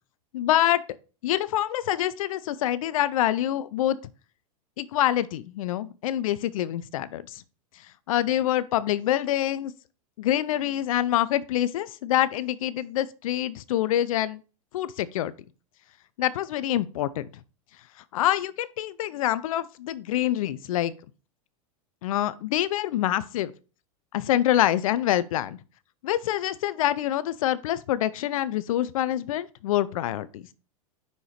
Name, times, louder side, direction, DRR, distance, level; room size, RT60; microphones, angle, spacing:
voice 1, 0.3-0.8 1.2-4.0 4.8-7.4 8.1-9.7 10.2-14.4 14.7-15.3 16.2-17.3 18.1-20.9 22.0-23.5 24.1-25.6 26.0-30.4, left 12 dB, 70° left, 0.4 m, -26 dB
5.8 x 5.3 x 3.1 m
hypercardioid pair, 100°, 19 cm